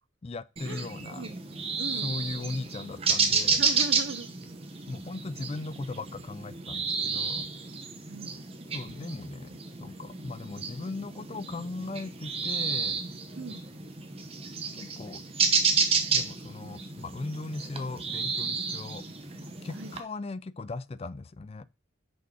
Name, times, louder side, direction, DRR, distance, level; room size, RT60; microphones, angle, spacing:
voice 1, 0.2-1.3 2.0-3.6 4.9-7.5 8.7-13.0 14.7-15.2 16.1-19.0 19.6-21.7, left 3 dB, 30° left, 0.4 m, -38 dB
sound 1, 0.6-20.0, right 5 dB, 30° right, 0.9 m, -31 dB
voice 2, 1.8-2.1 3.5-4.3 8.1-8.4 13.3-13.7 19.7-19.9, right 4 dB, 70° right, 0.7 m, -39 dB
6.4 x 5.5 x 4.7 m
head